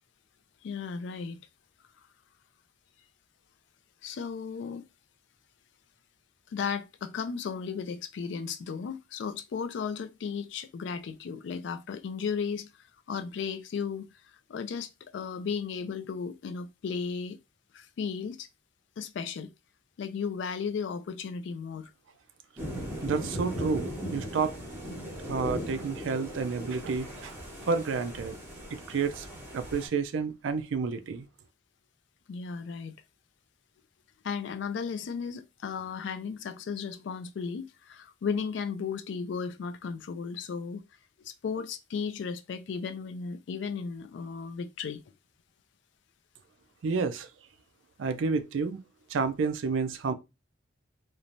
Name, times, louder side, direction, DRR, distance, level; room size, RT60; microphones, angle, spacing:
voice 1, 0.6-1.4 4.0-4.8 6.5-12.7 13.1-14.1 14.5-17.4 17.7-18.5 19.0-19.5 20.0-21.9 32.3-33.0 34.2-40.8 41.2-45.0, left 6 dB, 60° left, 0.3 m, -35 dB
sound 1, 22.6-29.9, equal, 10° right, 0.9 m, -38 dB
voice 2, 23.0-24.5 25.2-27.3 27.7-28.4 28.7-29.3 29.5-31.3 46.8-47.3 48.0-48.8 49.1-50.1, right 5 dB, 70° right, 0.4 m, -30 dB
3.1 x 2.1 x 2.5 m
head